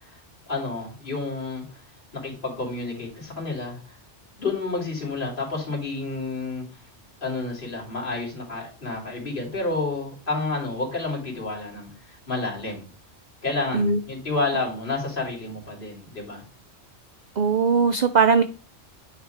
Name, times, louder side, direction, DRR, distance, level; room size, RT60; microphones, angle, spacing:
voice 1, 0.5-1.6 2.1-3.8 4.4-6.6 7.2-11.9 12.3-12.8 13.4-16.4, left 3 dB, 45° left, -2 dB, 2.6 m, -29 dB
voice 2, 17.4-18.4, right 5 dB, 60° right, 10 dB, 0.4 m, -19 dB
9.0 x 3.1 x 4.7 m, 0.38 s
omnidirectional pair, 1.2 m